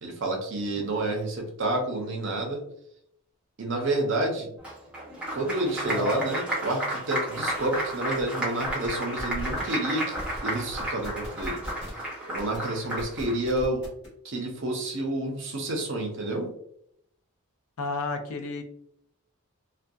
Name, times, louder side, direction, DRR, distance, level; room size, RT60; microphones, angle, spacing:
voice 1, 0.0-2.6 3.6-4.5 5.3-10.2 10.4-11.6 12.3-13.9 14.2-16.5, right 2 dB, 55° right, 2 dB, 0.6 m, -29 dB
Applause, 4.6-13.4, equal, 5° right, 0.5 m, -32 dB
voice 2, 5.9-6.2 17.8-18.6, left 4 dB, 70° left, 4 dB, 0.5 m, -32 dB
sound 1, 7.7-7.8 8.0-8.2 8.6-8.9 9.2-9.6 10.1-10.4 10.7-12.0 12.4-12.6 13.0-14.1, equal, 50° left, 1.0 m, -39 dB
2.6 x 2.2 x 2.2 m, 0.73 s
head